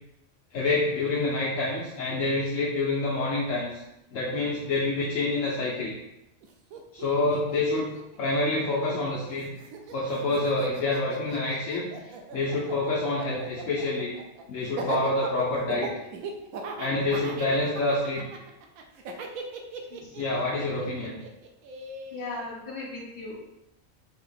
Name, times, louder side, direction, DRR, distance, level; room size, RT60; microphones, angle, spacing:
voice 1, 0.5-3.8 4.1-5.9 6.9-9.5 9.9-14.1 14.5-15.9 16.8-18.3 20.2-21.2, left 2 dB, 70° left, -5 dB, 1.1 m, -27 dB
Laughter, 6.4-6.5 6.7-9.1 9.3-22.4, right 4 dB, 85° right, 1.0 m, -38 dB
voice 2, 22.1-23.4, left 2 dB, 40° left, -4 dB, 1.4 m, -37 dB
3.8 x 2.9 x 4.1 m, 0.90 s
omnidirectional pair, 1.4 m